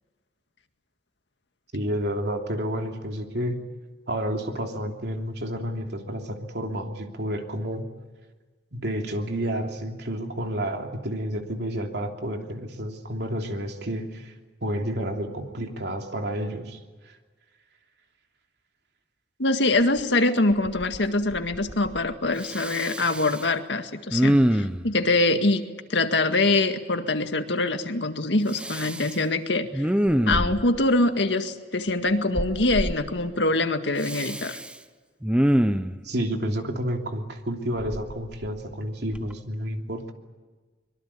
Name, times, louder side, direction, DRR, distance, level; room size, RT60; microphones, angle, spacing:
voice 1, 1.7-3.6 4.1-7.9 8.7-14.3 14.6-16.8 17.1-17.2 36.0-40.1, equal, 65° right, 4 dB, 3.1 m, -30 dB
voice 2, 19.4-25.6 25.9-29.9 30.3-34.6, left 2 dB, 80° left, 7 dB, 2.0 m, -24 dB
Respiratory sounds, 20.0-20.1 20.5-21.1 21.3-22.1 22.4-23.4 24.1-24.9 28.5-29.2 29.7-30.8 32.4-33.0 34.0-34.7 35.2-36.0 37.8-38.7 39.1-39.3, equal, 5° right, 0.9 m, -25 dB
24.5 x 23.0 x 8.5 m, 1.4 s
head